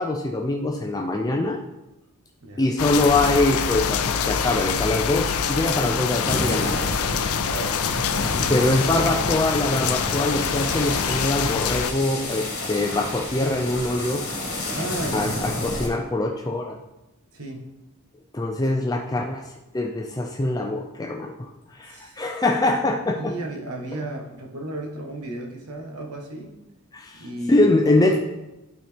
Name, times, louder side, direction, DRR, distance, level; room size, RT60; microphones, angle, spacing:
voice 1, 0.0-1.6 2.6-6.8 8.5-14.2 15.1-16.8 18.3-19.5 19.7-23.3 26.9-28.2, left 2 dB, 15° left, 2 dB, 0.4 m, -23 dB
sound 1, 2.8-11.9, left 6 dB, 75° left, 0.5 m, -25 dB
sound 2, 6.2-15.9, left 1 dB, 45° left, 2.0 m, -30 dB
voice 2, 7.5-7.9 14.7-15.4 17.3-17.7 21.9-22.2 23.2-26.6 27.2-28.2, right 1 dB, 85° right, 1 dB, 1.4 m, -33 dB
11.5 x 4.3 x 3.5 m, 0.98 s
head